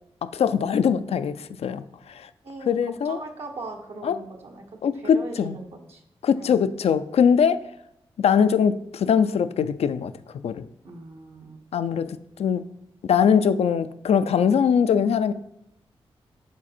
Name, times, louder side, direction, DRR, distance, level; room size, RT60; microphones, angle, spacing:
voice 1, 0.2-1.8 2.7-3.2 4.0-4.2 4.8-5.6 6.2-7.6 8.2-10.1 10.4-10.7 11.7-12.6 13.0-15.3, left 7 dB, 75° left, 0.4 m, -21 dB
voice 2, 2.4-4.6 4.9-6.0 6.3-6.6 10.8-11.6, right 2 dB, 75° right, 1.0 m, -39 dB
7.4 x 4.0 x 4.3 m
cardioid pair, 50°, 11 cm